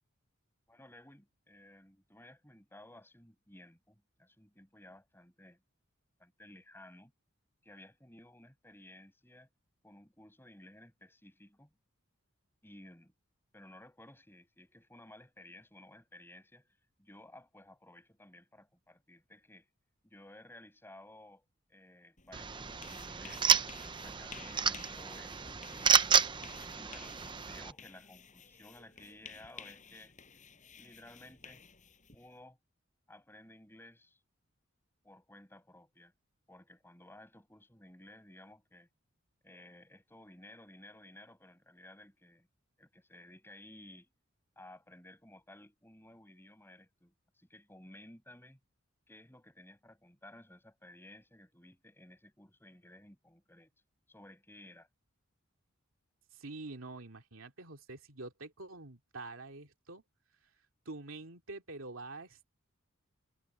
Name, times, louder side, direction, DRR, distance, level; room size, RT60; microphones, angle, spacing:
voice 1, 0.7-5.6 6.2-7.1 7.6-9.5 9.8-11.7 12.6-13.1 13.5-19.7 20.0-26.1 26.7-27.2 27.4-30.1 30.8-31.6 32.1-32.6 33.1-34.2 35.0-36.1 36.5-38.9 39.4-42.5 42.8-44.1 44.6-48.6 49.1-53.7 54.1-54.9, left 1 dB, 10° left, 7.0 m, -56 dB
sound 1, 22.2-32.4, left 6 dB, 35° left, 6.2 m, -54 dB
sound 2, 22.3-27.7, right 6 dB, 20° right, 0.6 m, -31 dB
voice 2, 56.3-60.0 60.9-62.4, right 2 dB, 75° right, 2.5 m, -46 dB
head